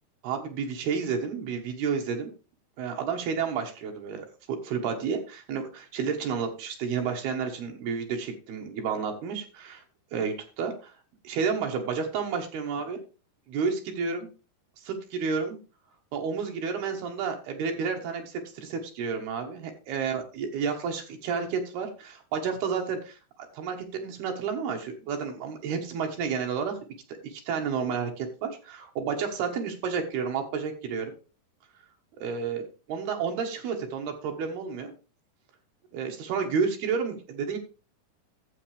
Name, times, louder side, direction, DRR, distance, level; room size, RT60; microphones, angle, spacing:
voice 1, 0.2-2.3 2.8-9.8 10.1-10.9 11.2-13.0 13.5-14.3 14.8-15.6 16.1-23.2 23.5-26.8 27.2-31.1 32.2-34.9 35.9-37.6, right 6 dB, 75° right, 3 dB, 3.2 m, -31 dB
12.0 x 7.8 x 3.3 m, 0.33 s
omnidirectional pair, 4.6 m